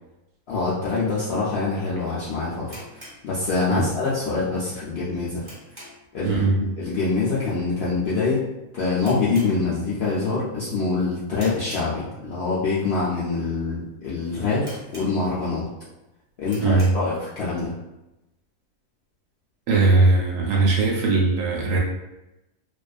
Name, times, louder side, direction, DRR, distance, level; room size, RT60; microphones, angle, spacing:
voice 1, 0.5-2.8 3.2-5.4 6.1-6.4 6.8-8.5 8.7-15.6 16.4-17.7, left 3 dB, 65° left, -9 dB, 0.6 m, -25 dB
sound 1, 2.6-4.0 4.3-4.4 4.9-6.2 6.5-6.8 7.1-7.2 7.9-8.2 8.4-8.5 8.9-10.1 10.5-10.8 11.3-12.4 13.0-13.1 13.7-13.8 14.0-14.1 14.6-15.5 15.9-16.0 16.4-17.1, equal, 30° right, 0.5 m, -44 dB
voice 2, 6.2-6.6 16.6-16.9 19.7-21.8, right 3 dB, 70° right, -3 dB, 0.9 m, -19 dB
2.4 x 2.3 x 2.3 m, 0.95 s
omnidirectional pair, 1.6 m